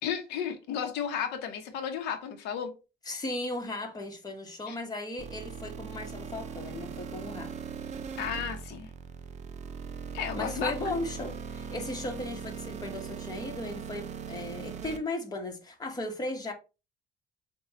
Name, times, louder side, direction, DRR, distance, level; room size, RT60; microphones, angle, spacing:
voice 1, 0.0-2.7 4.7-4.8 8.2-8.9 10.1-11.0, left 8 dB, 90° left, 0.8 m, -33 dB
voice 2, 3.0-7.5 10.3-16.5, left 2 dB, 20° left, 1.2 m, -36 dB
sound 1, 5.2-15.0, right 6 dB, 45° right, 0.5 m, -40 dB
6.7 x 2.3 x 2.9 m
cardioid pair, 110°, 17 cm